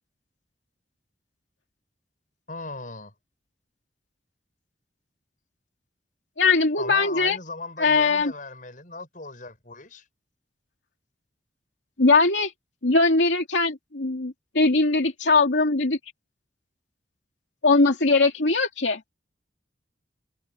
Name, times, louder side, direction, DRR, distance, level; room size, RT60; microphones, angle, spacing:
voice 1, 2.5-3.1 6.8-10.0, left 3 dB, 45° left, 6.8 m, -38 dB
voice 2, 6.4-7.4 7.8-8.3 12.0-12.5 12.8-16.0 17.6-19.0, left 3 dB, 85° left, 2.5 m, -20 dB
head